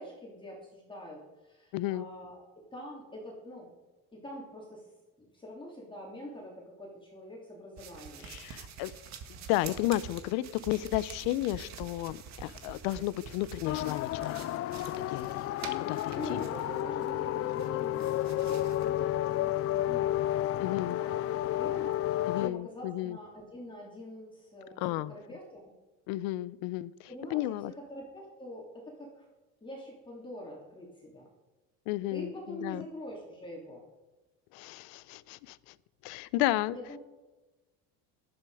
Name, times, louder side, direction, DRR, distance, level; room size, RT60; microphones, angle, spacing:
voice 1, 0.0-3.7 4.1-4.9 5.2-8.3 8.6-8.8 16.1-25.6 27.1-29.3 29.6-31.3 32.1-33.8 36.7-37.0, equal, 15° left, 3.1 m, -45 dB
voice 2, 1.7-2.1 8.2-8.9 9.5-14.5 15.1-15.3 15.9-16.4 20.6-21.0 22.2-23.2 24.8-25.1 26.1-27.7 31.9-32.8 34.5-35.7 36.0-36.8, left 16 dB, 80° left, 0.8 m, -33 dB
sound 1, 7.8-17.1 17.5-18.9, right 7 dB, 50° right, 1.9 m, -47 dB
sound 2, 13.6-22.5, left 13 dB, 40° left, 0.5 m, -31 dB
17.5 x 12.0 x 4.9 m
cardioid pair, 140°, 35 cm